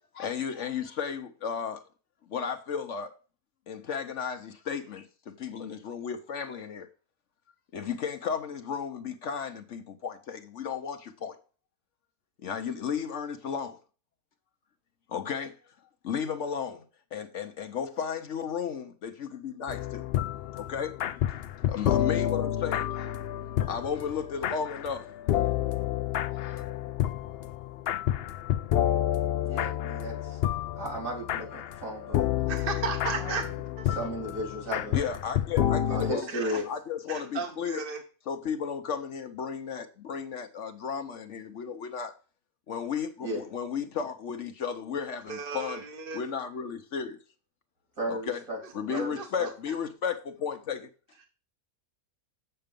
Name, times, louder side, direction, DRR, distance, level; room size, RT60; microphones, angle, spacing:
voice 1, 0.1-1.9 2.3-3.1 3.7-6.9 7.7-11.4 12.4-13.8 15.1-15.7 16.0-16.8 17.1-20.0 20.5-20.9 21.6-23.2 23.6-25.4 26.3-26.6 34.9-37.8 38.3-42.1 42.7-45.8 46.1-47.2 48.1-48.4 48.7-50.9, left 7 dB, 60° left, 1.0 m, -34 dB
sound 1, 19.7-36.1, left 11 dB, 75° left, 0.5 m, -29 dB
voice 2, 29.4-30.4 30.8-32.2 33.1-33.6 33.9-35.0 35.9-36.7 43.2-43.4 48.0-49.5, right 1 dB, 65° right, 3.9 m, -35 dB
voice 3, 32.5-33.5 33.8-33.9 36.3-36.6 37.1-38.0 45.3-46.2 48.9-49.2, right 5 dB, 40° right, 1.1 m, -35 dB
7.8 x 6.7 x 5.1 m
omnidirectional pair, 1.6 m